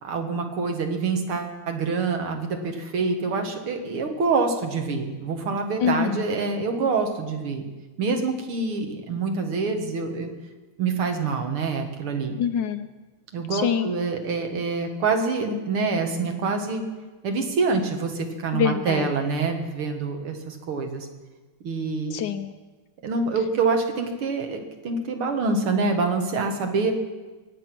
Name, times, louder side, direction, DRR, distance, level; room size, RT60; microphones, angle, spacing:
voice 1, 0.0-7.6 8.0-10.3 10.8-12.4 13.3-16.8 17.2-21.1 21.6-22.2 23.0-26.9, right 4 dB, 85° right, 4 dB, 2.6 m, -26 dB
voice 2, 5.8-6.3 12.4-12.9 13.5-13.9 18.5-19.1 22.1-22.6, left 8 dB, 70° left, 10 dB, 1.2 m, -25 dB
23.0 x 9.0 x 6.0 m, 1.2 s
omnidirectional pair, 2.3 m